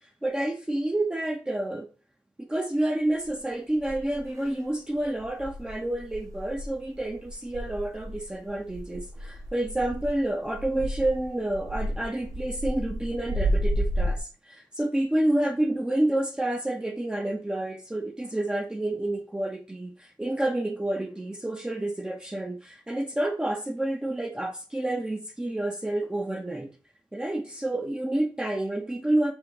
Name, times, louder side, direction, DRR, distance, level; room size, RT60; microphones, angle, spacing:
voice 1, 0.2-1.9 2.4-26.7 27.1-29.3, right 1 dB, 10° right, 3 dB, 0.5 m, -29 dB
sound 1, 3.2-3.3 3.8-4.5 4.9-14.2, equal, 40° right, 0.8 m, -32 dB
5.3 x 2.8 x 3.5 m, 0.34 s
wide cardioid pair, 130°, 8 cm